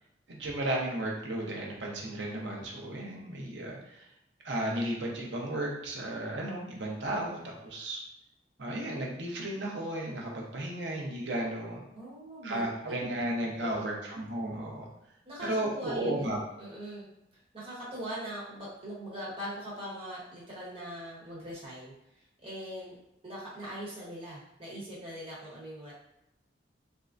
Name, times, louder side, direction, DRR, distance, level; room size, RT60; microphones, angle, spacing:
voice 1, 0.3-4.1 4.4-8.0 8.6-11.8 12.4-14.9 15.4-16.4, right 1 dB, 80° right, -1 dB, 0.7 m, -34 dB
voice 2, 11.9-12.9 13.6-13.8 15.3-17.1 17.5-23.0 23.2-25.9, equal, 30° right, -7 dB, 1.0 m, -41 dB
3.5 x 2.1 x 2.5 m, 0.85 s
head